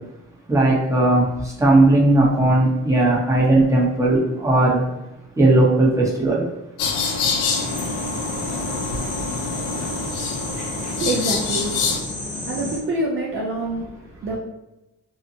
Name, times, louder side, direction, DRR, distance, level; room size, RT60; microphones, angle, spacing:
voice 1, 0.5-1.2 1.6-4.8 5.4-6.4, right 2 dB, 10° right, -4 dB, 0.8 m, -17 dB
sound 1, 6.8-12.0, left 4 dB, 90° left, 0.5 m, -26 dB
sound 2, 7.5-12.8, left 1 dB, 25° left, 1.1 m, -31 dB
voice 2, 10.4-14.4, right 2 dB, 45° right, -2 dB, 0.5 m, -27 dB
2.7 x 2.1 x 2.7 m, 0.96 s
cardioid pair, 90°, 30 cm